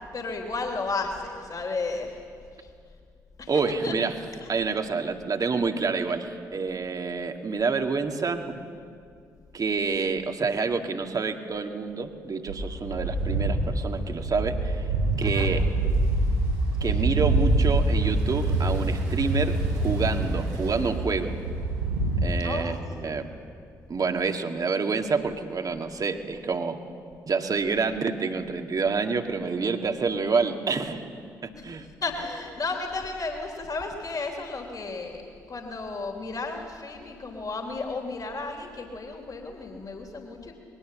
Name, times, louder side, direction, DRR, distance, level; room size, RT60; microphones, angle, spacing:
voice 1, 0.1-2.1 2.6-2.7 3.4-3.5 3.8-3.9 15.2-15.5 22.4-22.6 23.0-23.1 31.5-31.7 32.0-35.2 35.5-40.5, left 3 dB, 40° left, 2 dB, 3.1 m, -33 dB
voice 2, 3.5-8.7 9.5-14.8 15.2-15.7 16.8-21.3 22.2-23.3 23.9-26.8 27.3-31.1 31.4-31.9, right 4 dB, 40° right, 5 dB, 2.0 m, -28 dB
sound 1, 12.5-22.2, right 2 dB, 80° right, 7.9 m, -25 dB
25.5 x 21.5 x 7.5 m, 2.3 s
figure-of-eight pair, 40°, 9 cm